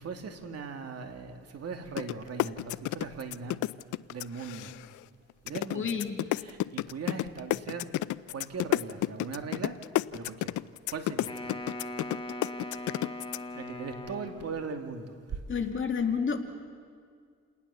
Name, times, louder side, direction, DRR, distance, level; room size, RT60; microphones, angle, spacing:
voice 1, 0.0-3.6 4.1-4.7 5.4-6.0 6.3-7.9 8.3-9.8 10.1-10.6 10.9-11.4 13.5-15.4, right 5 dB, 55° right, 5 dB, 2.4 m, -39 dB
sound 1, 2.0-2.1 2.4-5.0 5.5-13.4, left 16 dB, 80° left, 0.6 m, -30 dB
voice 2, 5.7-6.2 15.5-16.4, left 6 dB, 40° left, 4 dB, 2.4 m, -29 dB
Wind instrument woodwind instrument, 11.2-14.7, left 1 dB, 20° left, 2.1 m, -40 dB
28.5 x 19.0 x 7.0 m, 2.1 s
cardioid pair, 90°, 30 cm